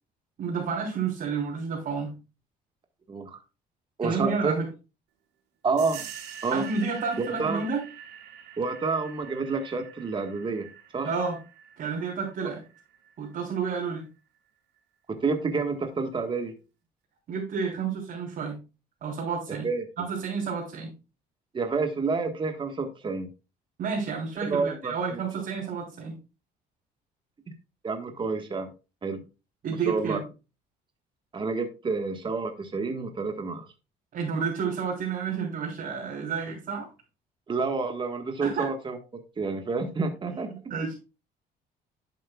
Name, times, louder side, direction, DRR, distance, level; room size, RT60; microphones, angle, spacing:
voice 1, 0.4-2.2 4.0-4.7 6.5-7.8 11.0-11.4 11.8-12.6 13.2-14.0 17.3-18.6 19.0-19.7 20.0-20.9 23.8-26.1 29.6-30.2 34.1-36.9 38.4-38.7 40.5-40.9, right 5 dB, 60° right, -4 dB, 3.4 m, -30 dB
voice 2, 3.1-3.4 4.0-4.6 5.6-6.0 6.4-6.6 7.4-7.7 8.6-10.7 10.9-11.1 15.1-16.5 19.6-19.8 21.5-23.3 24.5-25.2 27.8-28.7 29.0-29.2 29.9-30.2 31.3-33.7 37.5-39.0 39.4-40.5, right 4 dB, 30° right, 5 dB, 1.5 m, -29 dB
sound 1, 5.8-14.1, right 9 dB, 90° right, 1.3 m, -46 dB
11.5 x 7.6 x 2.3 m, 0.30 s
cardioid pair, 110°, 17 cm